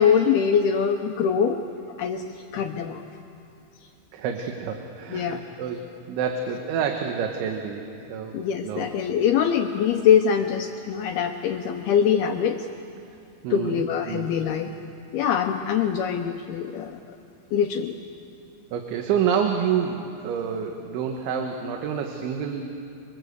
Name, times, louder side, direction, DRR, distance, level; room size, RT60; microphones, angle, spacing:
voice 1, 0.0-1.6 1.9-2.3 2.5-3.0 5.1-5.4 8.3-12.7 13.5-14.7 15.1-17.2 17.5-18.0, left 8 dB, 80° left, 4 dB, 2.3 m, -23 dB
voice 2, 4.1-7.8 8.1-8.9 13.4-14.4 18.7-22.6, right 7 dB, 80° right, 4 dB, 3.6 m, -28 dB
26.0 x 24.5 x 8.0 m, 2.7 s
omnidirectional pair, 5.4 m